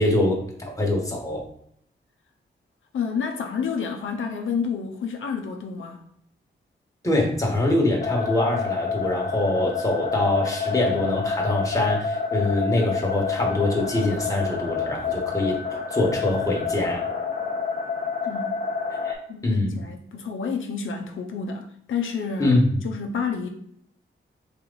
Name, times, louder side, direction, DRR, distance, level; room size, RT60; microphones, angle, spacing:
voice 1, 0.0-1.4 7.0-15.6 15.9-17.0 19.0-19.2 19.4-19.8 22.4-22.8, left 1 dB, 15° left, -1 dB, 1.2 m, -24 dB
voice 2, 2.9-6.0 18.3-18.5 19.3-22.5 22.8-23.5, left 6 dB, 80° left, 3 dB, 0.5 m, -29 dB
sound 1, 8.0-19.1, left 5 dB, 40° left, 0.9 m, -28 dB
3.6 x 3.1 x 3.8 m, 0.70 s
wide cardioid pair, 95°, 20 cm